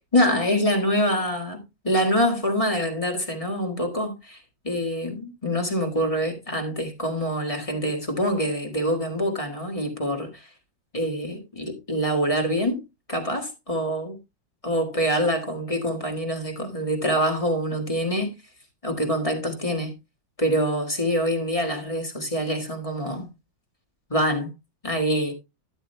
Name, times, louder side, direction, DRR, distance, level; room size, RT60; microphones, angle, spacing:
voice 1, 0.1-4.4 4.6-10.5 10.9-12.8 13.1-14.2 14.6-18.3 18.8-19.9 20.4-23.3 24.1-24.5 24.8-25.3, equal, 20° left, 1.7 m, -25 dB
12.5 x 9.8 x 2.2 m
omnidirectional pair, 2.0 m